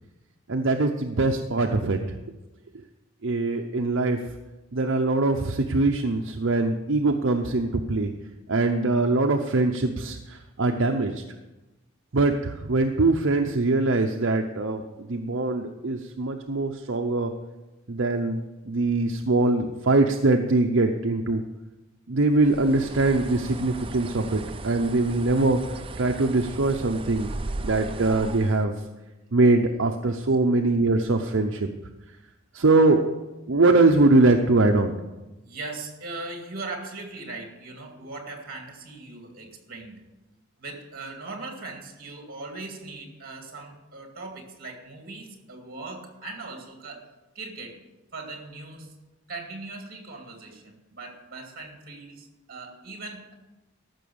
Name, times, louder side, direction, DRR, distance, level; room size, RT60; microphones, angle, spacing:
voice 1, 0.5-2.2 3.2-4.2 4.7-8.1 8.5-11.2 12.1-17.3 17.9-21.4 22.1-27.3 27.6-28.7 29.3-31.7 32.5-33.1 33.5-35.0, right 2 dB, 60° right, 3 dB, 0.7 m, -22 dB
Bird, 22.4-28.7, right 3 dB, 25° right, 0.4 m, -37 dB
voice 2, 35.4-40.0 40.6-47.1 47.3-47.8 48.1-48.9 49.3-53.3, right 3 dB, 45° right, 3 dB, 2.3 m, -39 dB
14.5 x 6.2 x 7.0 m, 1.1 s
head